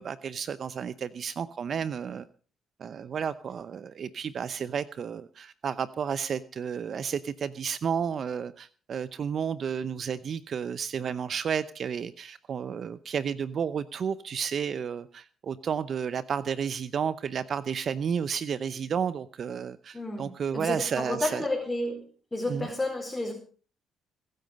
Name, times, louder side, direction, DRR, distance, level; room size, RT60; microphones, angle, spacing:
voice 1, 0.0-2.3 2.8-21.4 22.5-22.7, right 7 dB, 55° right, 15 dB, 0.8 m, -32 dB
voice 2, 19.9-20.3 20.5-22.0 22.3-23.3, left 2 dB, 15° left, 0 dB, 4.6 m, -31 dB
21.5 x 9.3 x 5.3 m, 0.40 s
cardioid pair, 90°, 0 cm